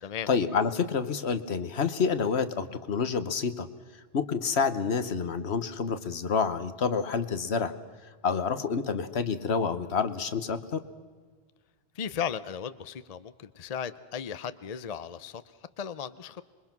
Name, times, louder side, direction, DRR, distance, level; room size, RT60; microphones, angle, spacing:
voice 1, 0.3-3.7 4.1-7.7 8.2-10.8, left 5 dB, 70° left, 11 dB, 1.4 m, -28 dB
voice 2, 11.9-16.4, left 7 dB, 40° left, 14 dB, 0.7 m, -36 dB
26.5 x 22.5 x 6.0 m, 1.5 s
omnidirectional pair, 1.1 m